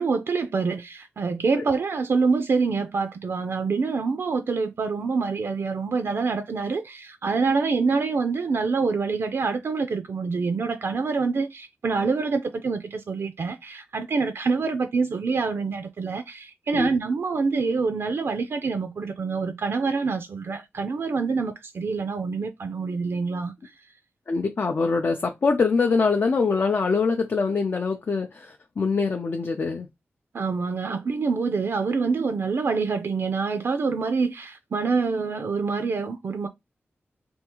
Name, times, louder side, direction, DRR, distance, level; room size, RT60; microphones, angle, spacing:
voice 1, 0.0-23.5 30.3-36.5, right 4 dB, 65° right, 0.4 m, -26 dB
voice 2, 24.3-29.9, left 4 dB, 55° left, 0.4 m, -24 dB
3.5 x 2.4 x 2.9 m
wide cardioid pair, 95°, 4 cm